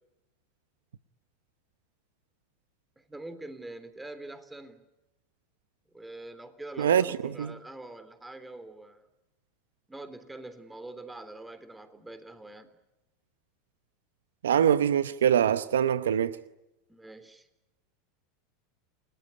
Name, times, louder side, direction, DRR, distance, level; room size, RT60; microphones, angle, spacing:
voice 1, 3.0-4.8 5.9-9.1 9.9-12.7 16.9-17.5, right 2 dB, 10° right, 3.5 m, -44 dB
voice 2, 6.8-7.5 14.4-16.4, right 9 dB, 85° right, 0.9 m, -24 dB
29.5 x 19.5 x 9.8 m
hypercardioid pair, 95°, 0 cm